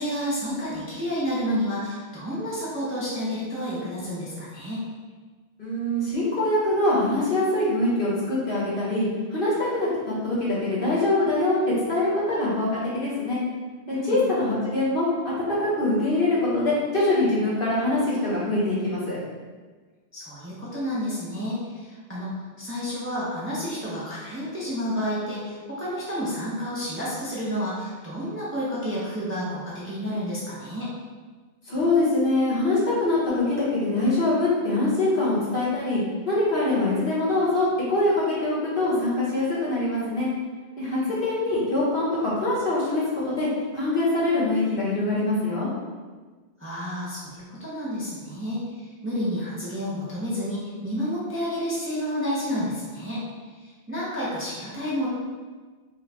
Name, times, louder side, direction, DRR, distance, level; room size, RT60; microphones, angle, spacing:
voice 1, 0.0-4.8 13.9-14.2 20.1-22.3 22.6-30.9 40.8-41.1 46.6-53.2 53.6-55.1, equal, 15° right, -9 dB, 0.8 m, -30 dB
voice 2, 5.6-9.0 9.3-11.6 11.9-13.4 14.0-15.1 15.5-19.2 31.7-36.0 36.3-40.3 40.8-40.9 41.2-43.5 43.7-45.7, left 2 dB, 55° left, -9 dB, 1.5 m, -24 dB
4.6 x 2.4 x 3.3 m, 1.4 s
omnidirectional pair, 1.1 m